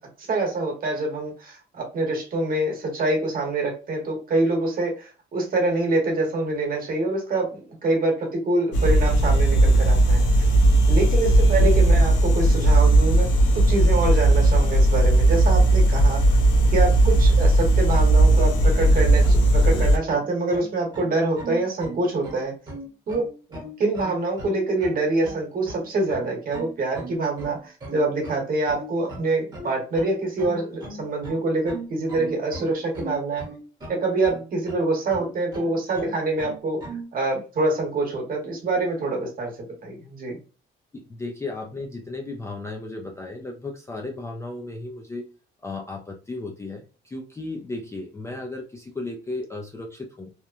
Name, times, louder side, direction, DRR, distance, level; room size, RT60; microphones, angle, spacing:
voice 1, 0.2-10.3 10.9-16.4 16.7-22.5 23.1-23.2 23.5-33.4 33.9-36.8 37.1-40.4, right 2 dB, 45° right, 1 dB, 1.1 m, -25 dB
sound 1, 8.7-20.0, right 1 dB, 70° left, 0.6 m, -17 dB
sound 2, 18.4-37.1, right 1 dB, 20° right, 0.9 m, -38 dB
voice 2, 40.9-45.3 45.6-50.3, left 2 dB, 15° left, 0 dB, 0.3 m, -35 dB
2.9 x 2.1 x 2.4 m, 0.34 s
cardioid pair, 155°, 20 cm